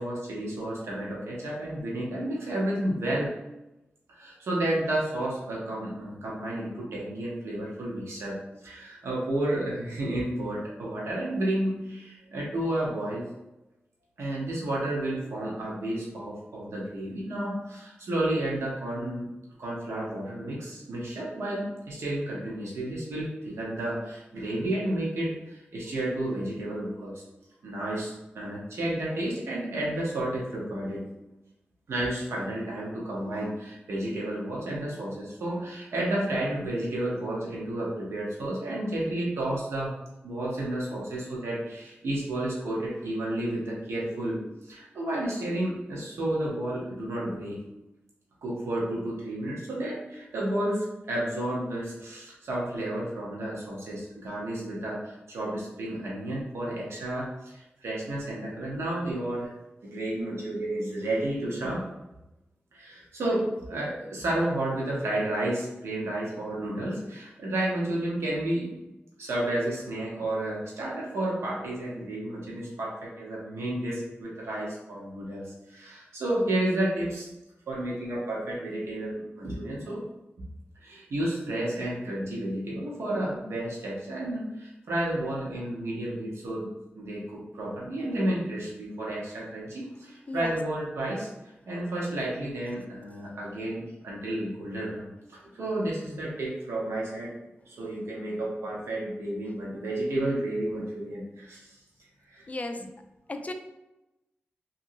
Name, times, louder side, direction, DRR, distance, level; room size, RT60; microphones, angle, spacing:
voice 1, 0.0-3.3 4.1-8.4 8.6-13.2 14.2-19.3 19.6-27.1 27.6-31.1 31.9-40.0 40.2-47.6 48.4-59.5 59.8-61.8 62.7-68.7 69.2-77.3 77.7-80.0 80.8-86.7 86.9-91.3 91.7-97.3 97.7-101.7 102.3-102.4, right 1 dB, 90° right, -5 dB, 0.9 m, -31 dB
voice 2, 102.5-102.8 103.3-103.5, left 2 dB, 35° left, 6 dB, 0.4 m, -34 dB
2.9 x 2.7 x 2.6 m, 0.95 s
cardioid pair, 55°, 4 cm